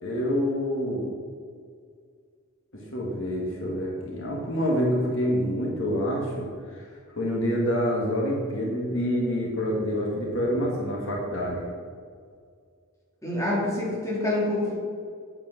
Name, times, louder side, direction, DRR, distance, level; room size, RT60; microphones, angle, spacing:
voice 1, 0.0-1.1 2.7-6.9 7.2-11.6, equal, 60° left, -3 dB, 2.0 m, -27 dB
voice 2, 13.2-14.7, left 1 dB, 15° left, -6 dB, 3.3 m, -26 dB
8.8 x 8.5 x 6.0 m, 2.1 s
head